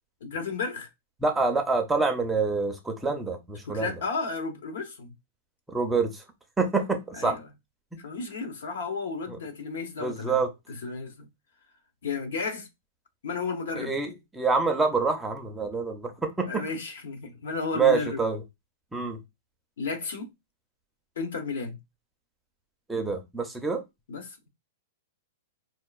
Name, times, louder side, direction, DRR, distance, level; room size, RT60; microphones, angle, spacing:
voice 1, 0.2-0.9 3.7-5.1 7.1-7.5 8.0-10.4 10.7-11.3 12.0-12.7 13.2-13.9 16.4-18.2 19.8-20.3 21.2-21.8 24.1-24.5, left 4 dB, 75° left, 0.9 m, -33 dB
voice 2, 1.2-4.0 5.7-6.2 6.6-7.4 7.9-8.0 10.0-10.5 13.7-16.6 17.8-18.4 18.9-19.2 22.9-23.8, right 4 dB, 5° right, 0.4 m, -26 dB
4.4 x 2.4 x 2.3 m
supercardioid pair, 170°, 0 cm